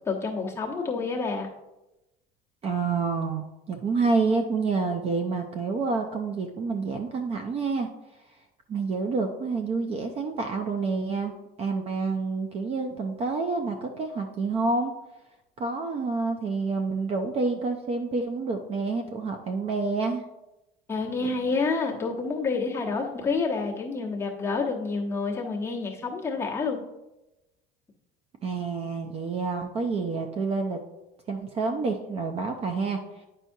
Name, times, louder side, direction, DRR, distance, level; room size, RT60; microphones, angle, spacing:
voice 1, 0.1-1.5 20.9-26.8, left 4 dB, 15° left, -4 dB, 1.0 m, -28 dB
voice 2, 2.6-7.9 8.7-11.3 11.6-14.9 15.6-20.2 28.4-30.8 31.3-33.2, right 4 dB, 35° right, 5 dB, 0.5 m, -28 dB
9.0 x 5.5 x 2.7 m, 0.97 s
cardioid pair, 155°, 19 cm